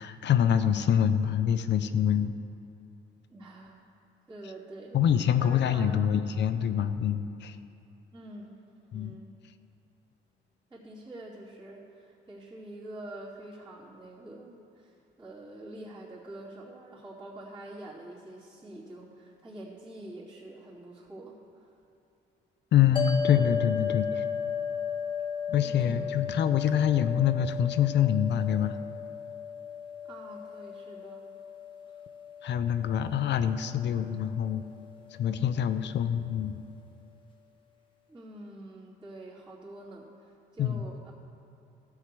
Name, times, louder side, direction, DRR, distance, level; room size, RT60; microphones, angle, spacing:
voice 1, 0.0-2.3 4.9-7.6 8.9-9.2 22.7-24.2 25.5-28.8 32.4-34.6 35.2-36.6 40.6-40.8, left 9 dB, 65° left, 11 dB, 0.6 m, -25 dB
voice 2, 3.3-3.8 4.3-5.0 5.4-6.0 8.1-8.6 8.9-9.3 10.7-21.8 25.6-26.2 30.0-31.2 38.1-41.1, right 1 dB, 20° right, -12 dB, 2.8 m, -46 dB
sound 1, 23.0-35.4, left 7 dB, 25° left, 1.5 m, -36 dB
13.5 x 4.9 x 7.6 m, 2.8 s
cardioid pair, 90°, 20 cm